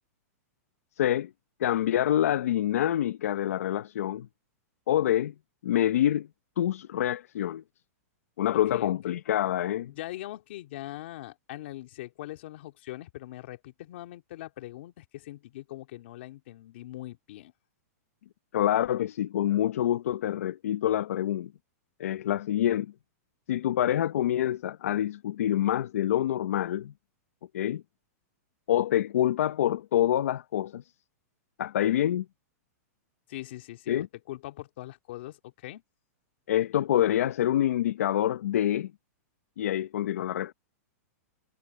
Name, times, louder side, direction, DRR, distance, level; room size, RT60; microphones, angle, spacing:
voice 1, 1.0-1.3 1.6-4.3 4.9-5.3 5.6-6.3 6.6-7.6 8.4-9.9 18.5-21.5 22.0-22.9 23.5-26.9 27.5-27.8 28.7-30.8 31.6-32.3 33.9-34.1 36.5-38.9 39.6-40.5, left 11 dB, 65° left, 0.7 m, -26 dB
voice 2, 8.5-9.1 9.9-17.5 33.3-35.8, left 16 dB, 45° left, 2.7 m, -42 dB
supercardioid pair, 175°, 9 cm